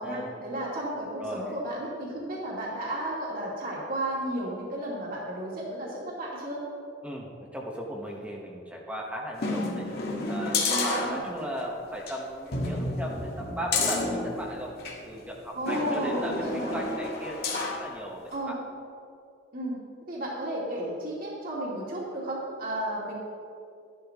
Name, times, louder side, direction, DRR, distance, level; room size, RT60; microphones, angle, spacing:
voice 1, 0.0-6.6 10.7-11.3 15.6-16.8 18.3-18.6 19.5-19.7 20.1-23.1, right 1 dB, 45° right, -5 dB, 2.3 m, -33 dB
voice 2, 7.0-9.9 10.3-14.7 15.0-18.6, equal, 5° right, -2 dB, 1.1 m, -37 dB
sound 1, 9.4-11.6 12.0-12.1 12.5-15.0 15.7-17.9 18.3-18.4, left 2 dB, 50° left, 1.8 m, -30 dB
13.5 x 12.0 x 3.6 m, 2.5 s
head